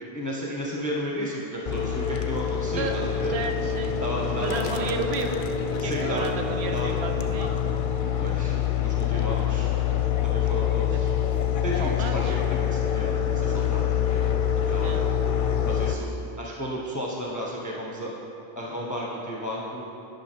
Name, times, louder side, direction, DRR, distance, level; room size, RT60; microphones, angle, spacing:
voice 1, 0.1-3.4 4.0-4.9 5.8-6.3 6.7-6.9 8.2-9.7 10.2-11.1 11.6-14.4 14.7-15.1 15.6-16.1 16.4-18.1 18.6-19.8, equal, 20° left, -3 dB, 0.7 m, -33 dB
sound 1, 1.7-15.9, left 9 dB, 60° left, 0.6 m, -26 dB
voice 2, 3.3-4.0 4.4-5.4 5.8-7.6 10.8-11.0 11.8-12.3 14.8-15.1, right 4 dB, 80° right, 5 dB, 1.0 m, -32 dB
10.5 x 5.5 x 4.3 m, 2.8 s
omnidirectional pair, 1.1 m